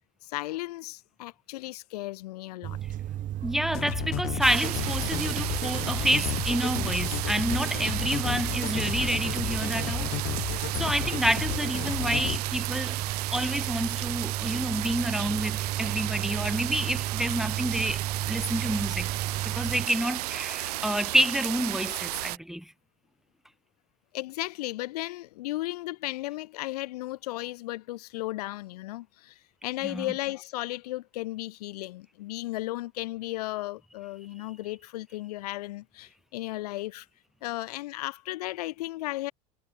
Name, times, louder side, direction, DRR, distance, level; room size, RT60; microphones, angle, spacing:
voice 1, 0.2-2.8 24.1-37.1 37.4-39.3, left 18 dB, 75° left, 4.5 m, -35 dB
sound 1, 2.6-19.9, right 12 dB, 40° right, 4.3 m, -34 dB
voice 2, 3.4-10.1 10.4-13.0 13.3-19.1 19.4-22.7 29.8-30.1, equal, ahead, 2.5 m, -29 dB
sound 2, 3.7-12.4, left 18 dB, 50° left, 2.4 m, -33 dB
sound 3, 4.4-22.4, right 18 dB, 75° right, 1.0 m, -34 dB
supercardioid pair, 105°, 20 cm